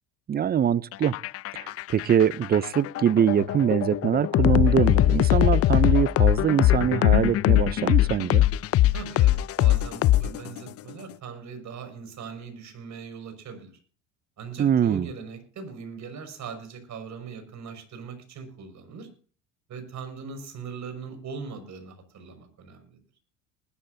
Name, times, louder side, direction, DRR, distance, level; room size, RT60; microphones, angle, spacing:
voice 1, 0.3-1.1 1.5-8.4 14.6-15.1, right 9 dB, 25° right, 0.5 m, -23 dB
sound 1, 0.9-10.7, left 14 dB, 40° left, 0.5 m, -21 dB
voice 2, 8.9-13.8 14.4-19.1 19.7-23.0, right 5 dB, 50° right, 5.9 m, -40 dB
20.0 x 13.0 x 2.7 m
supercardioid pair, 85°, 37 cm